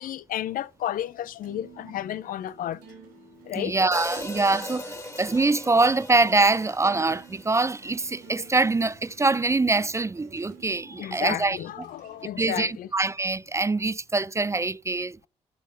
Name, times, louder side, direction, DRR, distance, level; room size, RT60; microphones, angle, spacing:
voice 1, 0.0-2.8 3.4-3.7 11.0-12.9, left 12 dB, 60° left, 0.5 m, -32 dB
sound 1, 0.6-12.3, right 3 dB, 85° right, 2.8 m, -51 dB
voice 2, 3.6-11.6 12.4-15.2, right 3 dB, 20° right, 0.4 m, -24 dB
Hi-hat, 3.9-8.1, left 1 dB, 20° left, 2.3 m, -39 dB
11.5 x 4.6 x 3.8 m
hypercardioid pair, 45°, 16 cm